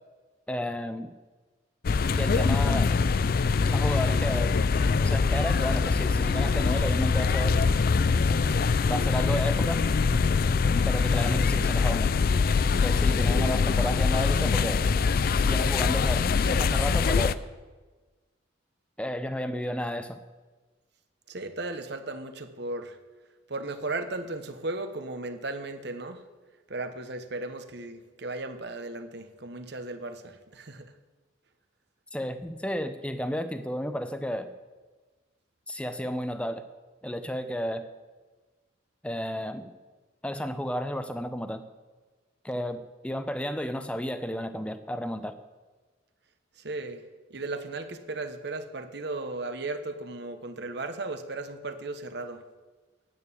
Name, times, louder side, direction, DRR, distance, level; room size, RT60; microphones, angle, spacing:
voice 1, 0.5-1.1 2.1-2.9 3.6-4.6 5.0-7.7 8.9-9.8 10.8-12.1 12.8-14.8 15.4-17.4 19.0-20.2 32.1-34.5 35.7-36.6 37.0-37.8 39.0-39.7 40.2-41.6 42.4-45.4, equal, 5° left, 9 dB, 0.6 m, -32 dB
sound 1, 1.8-17.3, left 5 dB, 45° left, 0.4 m, -23 dB
voice 2, 21.3-23.0 23.5-26.2 26.7-30.9 46.6-47.0 47.3-52.4, right 2 dB, 55° right, 8 dB, 1.0 m, -36 dB
9.7 x 8.9 x 8.5 m, 1.3 s
head